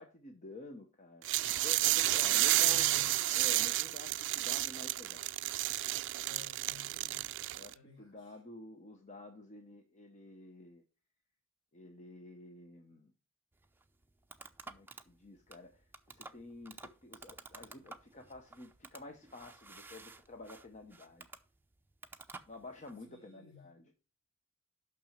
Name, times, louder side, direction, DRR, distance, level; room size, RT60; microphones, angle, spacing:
voice 1, 0.0-3.0 3.3-5.3 7.5-10.8 11.7-13.1 14.7-21.3 22.5-23.9, left 2 dB, 35° left, 0.8 m, -50 dB
sound 1, 1.2-7.7, right 17 dB, 60° right, 0.3 m, -31 dB
voice 2, 2.1-3.1 6.2-8.4 23.0-23.7, left 5 dB, 60° left, 4.2 m, -55 dB
sound 2, 13.5-23.0, right 3 dB, 10° right, 0.6 m, -53 dB
6.1 x 6.1 x 6.7 m
head